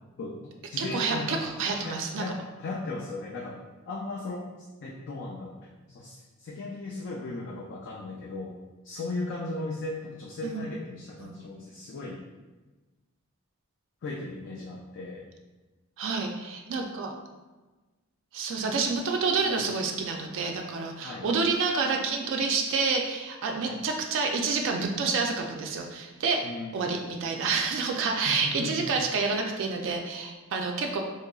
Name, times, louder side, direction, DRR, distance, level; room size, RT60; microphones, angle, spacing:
voice 1, 0.2-1.4 1.8-4.5 4.8-5.6 5.9-8.6 8.8-12.2 14.0-15.3 19.4-19.6 21.0-21.3 23.6-23.8 26.4-26.9 28.3-28.9, left 2 dB, 55° left, -2 dB, 0.4 m, -37 dB
voice 2, 0.8-2.2 10.4-10.6 11.2-11.4 16.0-17.1 18.3-26.4 26.7-31.0, right 4 dB, 60° right, 2 dB, 0.3 m, -28 dB
3.8 x 2.9 x 2.3 m, 1.2 s
head